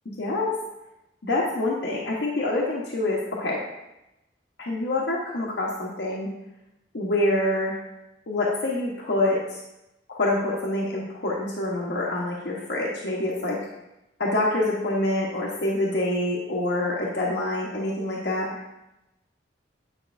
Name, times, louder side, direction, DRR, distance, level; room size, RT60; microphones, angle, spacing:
voice 1, 0.2-0.5 1.2-3.6 4.6-6.3 6.9-7.8 8.3-9.6 10.1-13.6 14.2-18.5, left 2 dB, 75° left, -5 dB, 1.0 m, -26 dB
9.0 x 5.3 x 2.5 m, 0.91 s
head